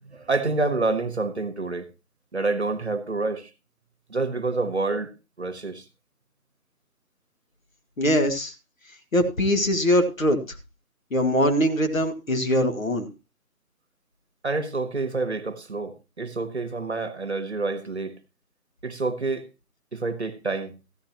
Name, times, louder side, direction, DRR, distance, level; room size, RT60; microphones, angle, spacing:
voice 1, 0.0-1.9 2.3-3.5 4.1-5.1 5.4-5.8 14.4-18.2 18.8-19.5 19.9-20.8, right 3 dB, 45° right, 1.1 m, -28 dB
voice 2, 8.0-8.5 9.1-10.4 11.1-13.1, equal, 60° left, 2.0 m, -22 dB
14.5 x 10.5 x 2.9 m
figure-of-eight pair, 175°, 46 cm